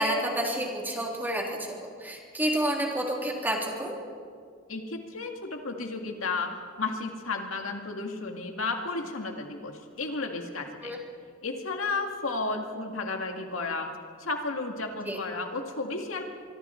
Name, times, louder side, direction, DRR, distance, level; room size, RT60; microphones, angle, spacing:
voice 1, 0.0-3.9 10.8-11.0 15.0-15.2, right 1 dB, 10° right, -1 dB, 3.4 m, -29 dB
voice 2, 4.7-6.5 6.8-11.0 11.4-13.9 14.2-16.2, left 3 dB, 90° left, 3 dB, 2.2 m, -33 dB
25.0 x 24.5 x 4.5 m, 2.1 s
head